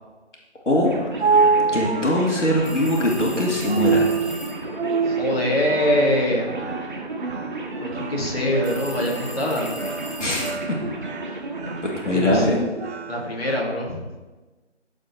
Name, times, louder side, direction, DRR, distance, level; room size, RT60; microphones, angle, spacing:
sound 1, 0.7-13.6, right 4 dB, 65° right, 0.7 m, -27 dB
sound 2, 0.8-12.4, right 2 dB, 45° right, 1.5 m, -34 dB
voice 1, 1.7-4.1 10.2-10.5 11.8-12.7, left 1 dB, 85° left, -2 dB, 2.2 m, -21 dB
sound 3, 2.6-4.7 8.6-10.8, left 1 dB, 25° left, 1.3 m, -39 dB
voice 2, 5.0-6.5 7.8-9.9 12.1-12.6 13.1-14.1, left 1 dB, 55° left, -2 dB, 2.5 m, -24 dB
12.5 x 4.4 x 4.4 m, 1.2 s
figure-of-eight pair, 160°, 35 cm